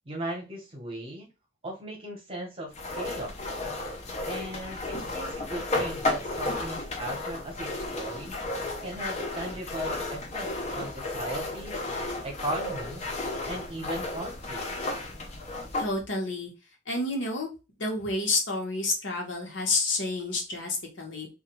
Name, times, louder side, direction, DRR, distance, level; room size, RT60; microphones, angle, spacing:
voice 1, 0.1-1.3 1.6-3.4 4.3-8.4 8.8-11.8 12.2-13.1 13.5-14.6, right 1 dB, 30° right, -1 dB, 0.8 m, -37 dB
sound 1, 2.7-15.9, left 2 dB, 35° left, 0.5 m, -33 dB
voice 2, 15.8-16.5 16.9-17.5 17.8-21.3, left 2 dB, 70° left, 0 dB, 0.9 m, -29 dB
2.3 x 2.2 x 2.9 m, 0.28 s
head